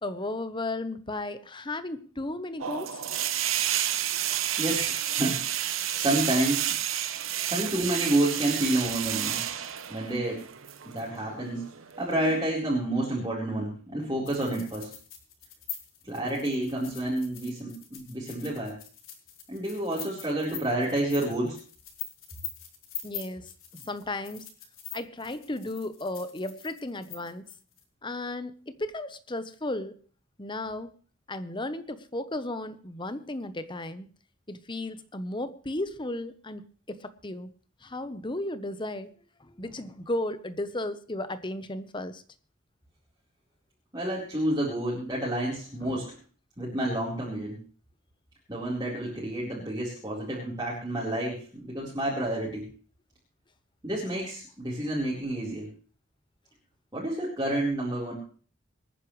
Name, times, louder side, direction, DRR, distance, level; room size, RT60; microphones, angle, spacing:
voice 1, 0.0-3.0 23.0-24.5 24.9-27.5 28.0-30.0 30.4-30.9 31.3-34.1 34.5-37.5 37.8-39.1 39.4-42.2 45.8-46.0, left 2 dB, 25° left, 1.1 m, -35 dB
sound 1, 2.6-12.5, right 11 dB, 85° right, 1.0 m, -31 dB
voice 2, 4.6-5.4 6.0-6.7 7.5-9.4 9.9-10.5 10.9-11.6 12.0-14.9 16.0-18.8 19.5-21.6 43.9-46.2 46.6-47.6 48.5-52.7 53.8-55.7 56.9-58.1, right 1 dB, 20° right, 4.3 m, -29 dB
sound 2, 14.2-27.8, left 10 dB, 85° left, 3.9 m, -43 dB
26.0 x 9.9 x 3.3 m
head